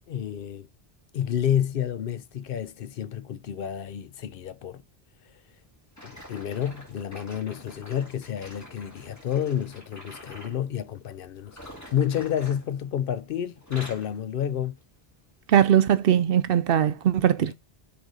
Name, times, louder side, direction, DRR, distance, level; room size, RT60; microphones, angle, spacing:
voice 1, 0.1-0.7 1.1-4.8 6.0-11.6 11.9-14.8 17.4-17.5, left 9 dB, 65° left, 0.7 m, -30 dB
sound 1, 5.9-10.6 11.4-13.2 13.5-14.2 14.8-15.0 15.6-15.7, equal, 15° left, 2.0 m, -46 dB
voice 2, 15.5-17.5, right 9 dB, 70° right, 0.7 m, -20 dB
6.2 x 3.5 x 5.1 m
omnidirectional pair, 1.0 m